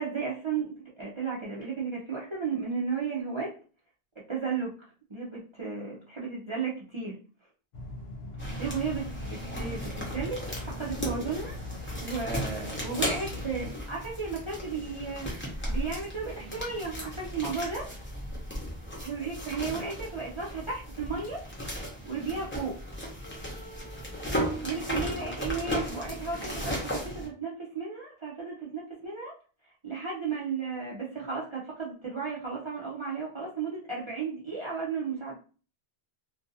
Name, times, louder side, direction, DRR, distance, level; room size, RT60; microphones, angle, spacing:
voice 1, 0.0-3.5 4.3-4.7 5.1-7.2 8.6-11.5 12.0-15.3 15.7-17.9 19.0-21.4 22.0-22.8 24.6-29.3 29.8-35.4, right 5 dB, 35° right, -5 dB, 0.6 m, -34 dB
sound 1, 7.7-13.7, left 2 dB, 70° left, 0.8 m, -41 dB
sound 2, 8.4-27.3, equal, 10° left, 0.7 m, -36 dB
2.5 x 2.3 x 2.6 m, 0.38 s
omnidirectional pair, 1.1 m